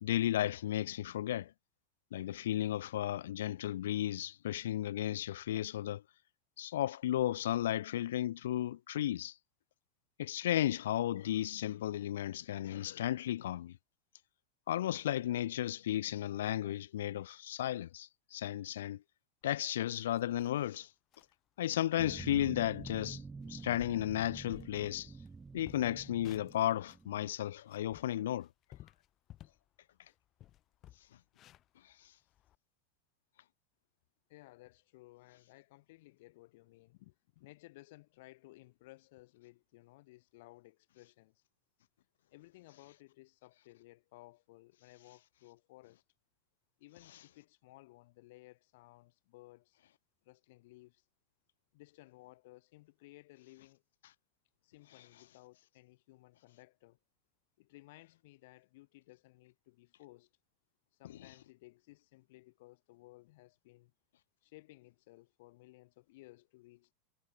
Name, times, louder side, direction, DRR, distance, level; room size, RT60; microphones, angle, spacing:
voice 1, 0.0-1.5 2.1-6.0 6.6-9.3 10.2-13.7 14.7-19.0 19.4-20.9 21.6-23.2 23.5-25.1 25.5-28.5, left 12 dB, 85° left, 0.7 m, -34 dB
sound 1, 19.9-20.7 21.1-21.3 21.8-21.9 22.2-22.5 22.9-23.2 23.6-25.3 25.6-27.1 27.5-29.7 30.0-30.1 30.4-32.6, left 13 dB, 35° left, 4.6 m, -56 dB
sound 2, 22.0-27.3, right 4 dB, 10° right, 1.5 m, -48 dB
voice 2, 34.3-41.4 42.3-46.0 46.8-49.8 50.2-51.0 51.7-53.8 54.6-57.0 57.6-60.3 60.9-63.9 64.4-66.9, left 20 dB, 65° left, 3.4 m, -58 dB
supercardioid pair, 140°, 0 cm